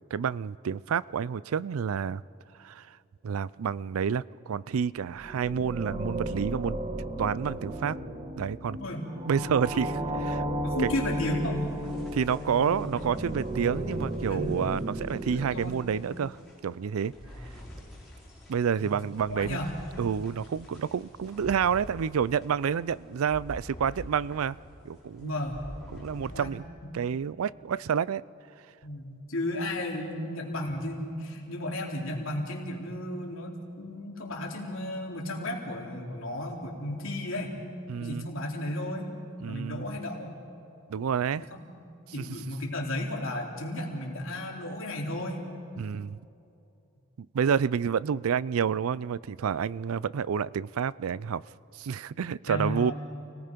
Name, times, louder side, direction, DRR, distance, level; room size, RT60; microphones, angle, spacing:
voice 1, 0.1-2.2 2.6-3.0 3.2-6.8 7.2-8.0 8.4-8.8 9.2-9.9 10.3-10.4 10.8-10.9 12.1-16.4 16.6-17.1 18.5-19.6 20.0-24.6 24.9-25.4 25.9-26.6 26.9-28.2 37.9-38.3 39.4-39.9 40.9-41.4 42.2-42.3 45.8-46.2 47.3-51.4 51.7-52.9, right 7 dB, 85° right, 20 dB, 0.4 m, -29 dB
sound 1, 5.1-16.3, right 1 dB, 30° right, 1.3 m, -34 dB
voice 2, 9.3-10.0 10.6-11.7 14.3-14.5 15.3-15.8 17.2-17.4 18.8-18.9 19.3-19.7 25.2-25.6 26.3-26.5 28.8-37.5 38.0-39.1 39.5-40.3 41.3-41.8 42.1-45.4 52.5-52.9, left 1 dB, 70° left, -1 dB, 3.3 m, -34 dB
sound 2, 10.8-26.8, equal, ahead, 5.8 m, -48 dB
28.5 x 18.5 x 5.2 m, 2.8 s
head